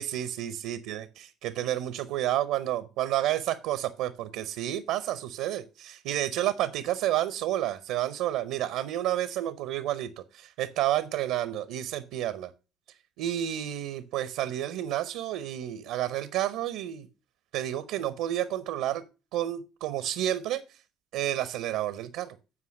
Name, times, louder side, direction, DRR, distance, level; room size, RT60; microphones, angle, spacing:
voice 1, 0.0-12.5 13.2-17.1 17.5-19.0 19.3-20.8 21.1-22.4, right 12 dB, 75° right, 15 dB, 0.6 m, -30 dB
8.6 x 4.7 x 6.3 m, 0.31 s
hypercardioid pair, 65°, 0 cm